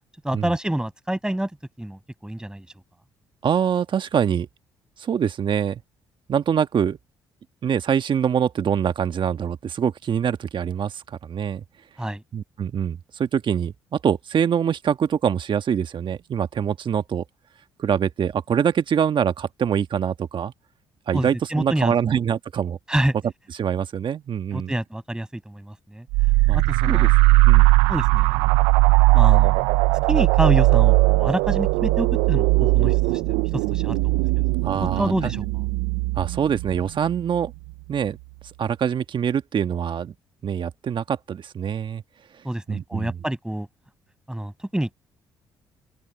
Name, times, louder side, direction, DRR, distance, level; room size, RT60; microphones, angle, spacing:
voice 1, 0.2-1.5 1.8-2.6 12.0-12.2 21.1-22.2 22.9-23.1 24.5-26.0 26.5-27.1 27.9-28.6 29.1-29.6 30.1-33.2 33.5-34.2 34.8-35.4 42.4-43.7 44.3-44.9, right 1 dB, 5° right, 6.6 m, -27 dB
voice 2, 3.4-4.5 5.0-5.8 6.3-7.0 7.6-11.6 12.3-17.2 17.8-20.5 21.1-22.8 23.5-24.7 26.5-26.6 26.9-27.1 27.5-27.7 34.6-35.3 36.2-37.5 37.9-38.2 38.6-40.1 40.4-42.0 42.7-43.2, right 8 dB, 55° right, 1.5 m, -24 dB
sound 1, 26.1-37.5, right 21 dB, 90° right, 0.6 m, -19 dB
open air
supercardioid pair, 60°, 10 cm